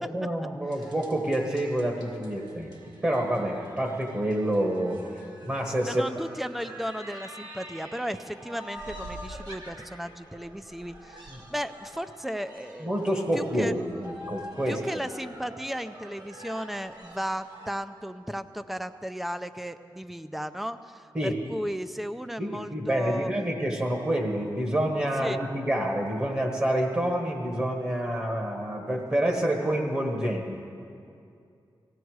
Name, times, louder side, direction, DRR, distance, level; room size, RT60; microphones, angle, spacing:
voice 1, 0.0-2.7 3.0-5.0 5.4-6.0 11.3-11.4 12.8-14.8 21.1-21.4 22.4-30.6, right 1 dB, 25° right, 1 dB, 1.2 m, -28 dB
sound 1, 0.7-17.7, equal, 55° right, 1.9 m, -46 dB
voice 2, 5.9-12.9 13.3-13.8 14.7-23.3 25.2-25.4, equal, ahead, 10 dB, 0.4 m, -35 dB
19.5 x 15.5 x 4.7 m, 2.4 s
wide cardioid pair, 175°, 8 cm